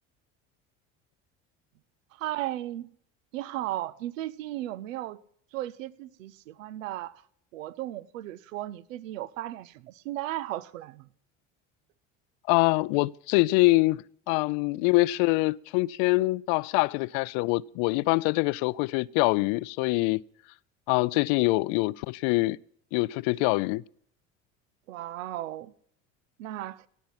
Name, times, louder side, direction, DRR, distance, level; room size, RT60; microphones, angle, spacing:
voice 1, 2.1-2.9 3.3-5.2 5.5-7.2 7.5-11.1 24.9-25.7 26.4-26.9, right 14 dB, 85° right, 0.7 m, -35 dB
voice 2, 12.5-20.2 20.9-22.6 22.9-23.8, left 22 dB, 65° left, 0.5 m, -24 dB
18.0 x 8.5 x 5.7 m
hypercardioid pair, 75°, 38 cm